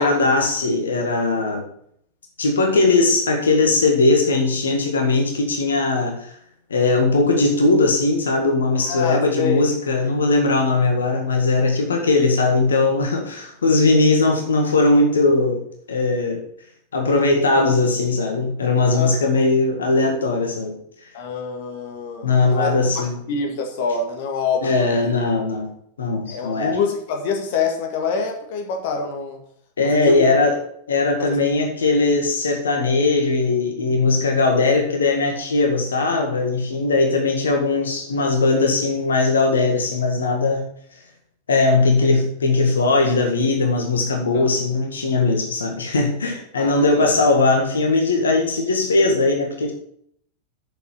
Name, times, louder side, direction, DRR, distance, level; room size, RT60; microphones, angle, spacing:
voice 1, 0.0-1.6 2.4-6.3 6.7-15.6 15.9-16.4 16.9-20.7 22.2-23.2 24.6-25.7 26.0-26.8 29.8-30.6 30.9-40.7 41.5-49.7, left 3 dB, 70° left, 3 dB, 1.8 m, -19 dB
voice 2, 8.8-9.6 9.9-10.1 18.9-19.3 21.1-25.1 26.3-29.4 29.8-30.3 31.2-31.4 44.3-44.5 46.6-47.1, left 5 dB, 50° left, 3 dB, 1.9 m, -26 dB
7.6 x 7.1 x 6.6 m, 0.68 s
figure-of-eight pair, 90°, 0 cm